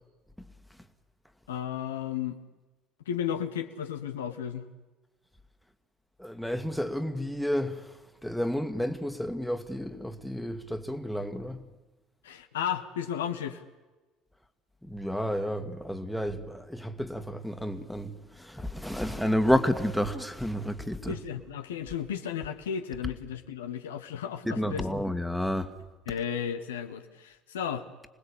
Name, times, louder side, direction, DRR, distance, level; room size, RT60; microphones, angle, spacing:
voice 1, 1.5-2.4 3.1-4.7 12.2-13.6 21.1-24.8 26.1-27.9, left 8 dB, 85° left, 1.2 m, -34 dB
voice 2, 6.2-11.7 14.8-21.2 24.4-25.7, equal, ahead, 1.9 m, -31 dB
26.5 x 19.5 x 8.6 m
hypercardioid pair, 60°, 0 cm